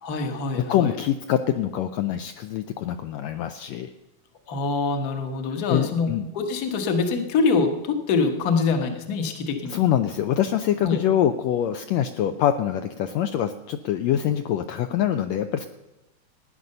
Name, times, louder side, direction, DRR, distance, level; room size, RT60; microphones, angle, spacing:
voice 1, 0.0-0.9 4.5-9.8 10.8-11.0, left 4 dB, 45° left, 6 dB, 1.2 m, -25 dB
voice 2, 0.6-3.9 5.5-6.3 9.7-15.7, left 10 dB, 80° left, 8 dB, 1.6 m, -24 dB
15.0 x 9.7 x 6.6 m, 1.0 s
omnidirectional pair, 3.4 m